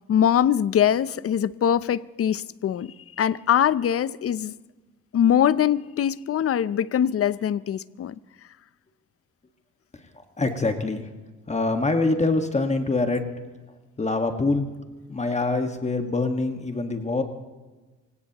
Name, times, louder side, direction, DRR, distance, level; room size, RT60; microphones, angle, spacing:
voice 1, 0.1-4.5 5.1-8.2, left 9 dB, 50° left, 0.6 m, -22 dB
voice 2, 10.4-11.1 11.5-13.3 14.0-14.7 15.1-17.2, left 3 dB, 20° left, 1.6 m, -24 dB
26.0 x 17.0 x 3.0 m
cardioid pair, 90°, 30 cm